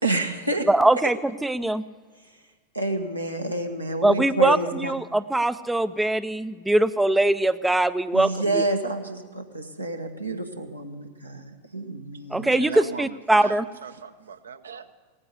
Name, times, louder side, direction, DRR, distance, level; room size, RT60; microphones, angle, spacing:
voice 1, 0.0-0.7 2.7-4.9 8.1-12.5, right 1 dB, 85° right, 3 dB, 1.4 m, -28 dB
voice 2, 0.7-1.2 1.4-1.8 4.0-8.6 12.3-13.6, right 1 dB, 5° right, 13 dB, 0.4 m, -22 dB
voice 3, 12.3-14.9, right 6 dB, 70° right, 10 dB, 0.8 m, -38 dB
17.5 x 9.6 x 8.0 m, 1.4 s
figure-of-eight pair, 90°, 0 cm